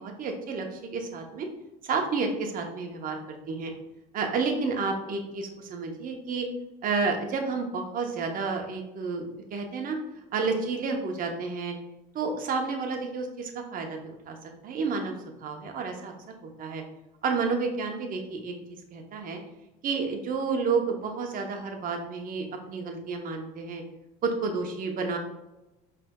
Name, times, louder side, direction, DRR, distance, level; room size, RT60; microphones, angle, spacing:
voice 1, 0.0-1.5 1.8-3.7 4.1-6.5 6.8-10.0 10.3-11.7 12.1-16.1 16.4-16.8 17.2-18.5 18.9-19.4 19.8-23.8 24.2-25.2, right 4 dB, 45° right, 3 dB, 0.9 m, -30 dB
5.0 x 3.4 x 2.3 m, 0.96 s
supercardioid pair, 85°, 19 cm